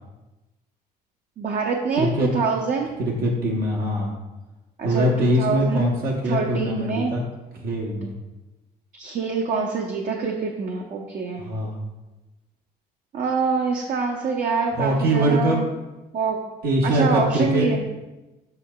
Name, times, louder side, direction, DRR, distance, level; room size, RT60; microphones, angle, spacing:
voice 1, 1.4-2.9 4.8-5.8 6.3-7.1 8.9-11.4 13.1-15.6 16.1-16.4 16.8-17.8, right 5 dB, 50° right, 1 dB, 0.7 m, -25 dB
voice 2, 2.0-2.3 3.0-4.1 4.8-7.2 7.5-8.1 11.4-11.8 14.8-15.6 16.6-17.7, equal, 70° right, -2 dB, 1.0 m, -22 dB
6.9 x 6.2 x 2.3 m, 1.1 s
cardioid pair, 110°, 17 cm